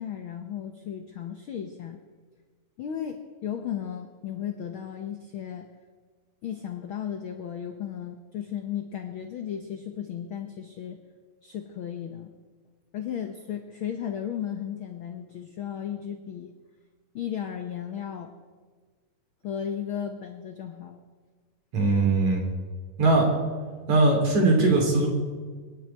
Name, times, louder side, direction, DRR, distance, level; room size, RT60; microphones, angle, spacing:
voice 1, 0.0-2.0 2.8-5.7 6.4-11.0 11.4-12.3 12.9-16.5 17.1-18.3 19.4-21.0, left 9 dB, 85° left, 5 dB, 1.1 m, -35 dB
voice 2, 21.7-22.4 23.0-23.3 23.9-25.1, right 2 dB, 60° right, 1 dB, 4.1 m, -20 dB
25.5 x 10.5 x 4.6 m, 1.5 s
omnidirectional pair, 3.6 m